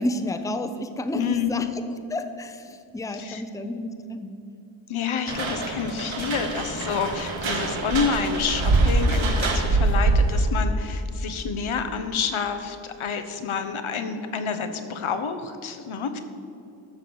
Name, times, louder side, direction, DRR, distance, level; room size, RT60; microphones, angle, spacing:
voice 1, 0.0-1.8 2.1-4.3, left 1 dB, 5° left, 8 dB, 0.6 m, -30 dB
voice 2, 1.1-1.7 3.1-3.4 4.9-16.2, left 6 dB, 90° left, 8 dB, 1.1 m, -28 dB
sound 1, 5.3-10.5, right 3 dB, 75° right, 1.6 m, -24 dB
12.5 x 6.3 x 7.0 m, 2.7 s
wide cardioid pair, 120°, 47 cm